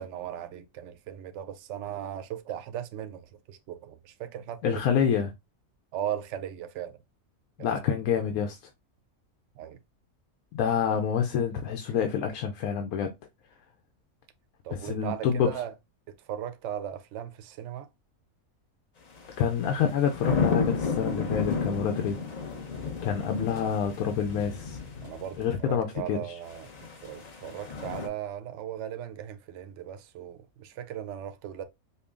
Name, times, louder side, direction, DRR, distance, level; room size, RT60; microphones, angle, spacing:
voice 1, 0.0-4.8 5.9-7.0 7.6-7.8 9.5-9.8 14.6-15.7 16.2-17.9 25.0-26.7 27.0-31.6, right 10 dB, 65° right, 0.8 m, -37 dB
voice 2, 4.6-5.3 7.6-8.6 10.5-13.1 14.7-15.5 19.4-22.2 23.0-24.8 25.4-26.4, left 7 dB, 90° left, 1.1 m, -27 dB
sound 1, 19.2-25.4 26.5-28.1, left 5 dB, 40° left, 0.6 m, -32 dB
5.4 x 2.2 x 2.5 m
omnidirectional pair, 1.5 m